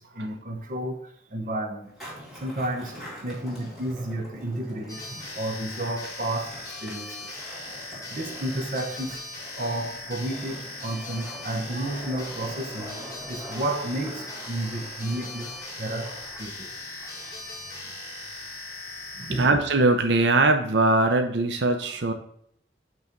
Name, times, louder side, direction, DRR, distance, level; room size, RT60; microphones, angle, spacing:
voice 1, 0.0-1.9 2.4-7.5 8.1-9.3 9.5-16.7 19.2-19.5, right 1 dB, 50° right, 0.8 m, -32 dB
Skateboard, 1.8-20.5, equal, ahead, 2.2 m, -45 dB
sound 1, 4.9-19.5, left 2 dB, 20° left, 1.7 m, -39 dB
voice 2, 19.4-22.1, right 2 dB, 85° right, 0.6 m, -21 dB
8.3 x 3.2 x 5.1 m
head